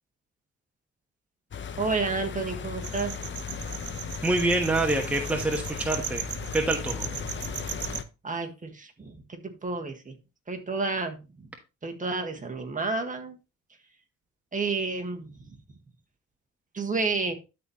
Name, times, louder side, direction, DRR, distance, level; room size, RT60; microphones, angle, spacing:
sound 1, 1.5-8.0, left 7 dB, 40° left, 0.8 m, -36 dB
voice 1, 1.8-3.1 3.5-3.9 8.2-10.1 10.5-11.5 11.8-13.4 14.5-15.8 16.7-17.3, right 3 dB, 25° right, 4 dB, 1.6 m, -31 dB
sound 2, 2.8-8.0, right 10 dB, 70° right, 0.8 m, -38 dB
voice 2, 4.2-6.2 6.5-7.1, right 2 dB, 5° right, 2 dB, 1.2 m, -26 dB
12.0 x 4.2 x 3.0 m, 0.28 s
cardioid pair, 90°, 30 cm